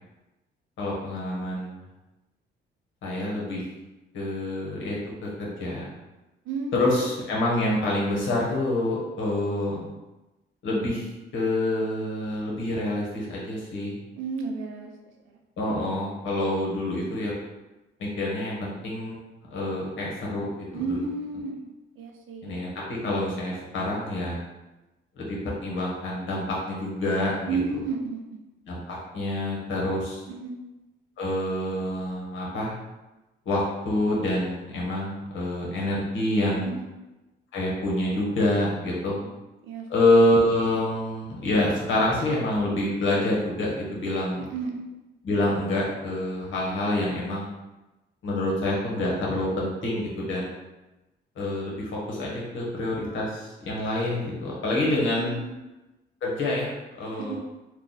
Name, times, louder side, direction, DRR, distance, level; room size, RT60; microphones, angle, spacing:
voice 1, 0.8-1.8 3.0-3.6 4.1-5.9 6.7-9.9 10.6-14.0 15.6-17.3 18.0-19.2 19.5-21.0 22.4-24.4 25.2-27.6 28.7-30.2 31.2-32.7 33.4-36.7 37.5-39.2 39.9-44.5 45.2-47.5 48.2-50.6 51.4-55.3 56.2-56.7 57.0-57.4, left 1 dB, 75° left, -4 dB, 1.2 m, -27 dB
voice 2, 6.4-6.9 14.2-14.9 15.3-15.4 20.7-21.5 22.0-22.6 27.5-28.2 30.3-30.6 36.6-36.9 39.6-39.9 44.4-44.8 55.2-55.5 57.2-57.4, right 4 dB, 85° right, 2 dB, 0.6 m, -32 dB
3.2 x 2.3 x 4.0 m, 1.1 s
cardioid pair, 90°, 20 cm